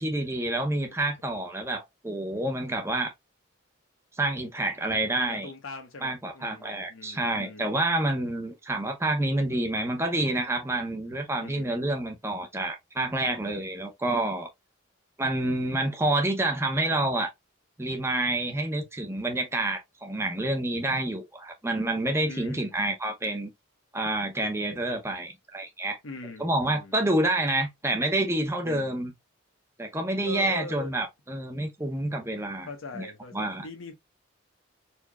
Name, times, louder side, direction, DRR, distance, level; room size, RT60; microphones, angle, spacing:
voice 1, 0.0-3.1 4.2-5.5 6.0-14.5 15.2-17.3 17.8-23.5 23.9-26.0 26.4-29.1 29.8-32.7 32.9-33.1 33.3-33.6, right 1 dB, 15° right, 0.7 m, -28 dB
voice 2, 5.3-7.7 11.3-11.8 22.2-22.8 26.0-27.0 28.6-29.0 30.2-31.0 32.7-33.9, left 2 dB, 85° left, 0.9 m, -42 dB
4.4 x 2.8 x 2.3 m
head